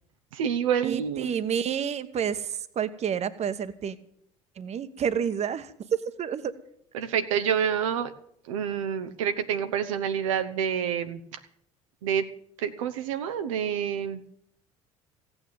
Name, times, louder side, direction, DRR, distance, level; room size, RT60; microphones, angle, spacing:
voice 1, 0.3-1.3 6.9-8.1 8.5-11.2 12.0-12.3 12.6-14.2, right 8 dB, 75° right, 8 dB, 0.9 m, -27 dB
voice 2, 0.8-4.0 4.6-5.7 6.2-6.6, right 8 dB, 40° right, 13 dB, 1.2 m, -29 dB
16.0 x 9.0 x 9.1 m, 0.67 s
figure-of-eight pair, 60°, 17 cm